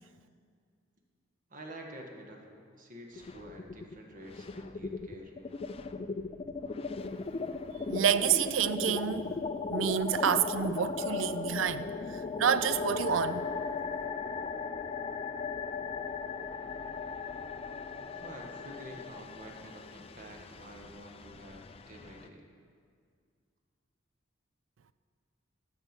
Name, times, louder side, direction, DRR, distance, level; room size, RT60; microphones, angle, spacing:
voice 1, 1.5-5.3 18.1-22.4, right 1 dB, 45° right, 1.4 m, -48 dB
sound 1, 3.1-3.9 4.2-22.3, left 4 dB, 30° left, 0.4 m, -37 dB
voice 2, 7.9-9.4 9.7-13.5, right 8 dB, 90° right, 0.4 m, -29 dB
12.5 x 5.5 x 7.4 m
head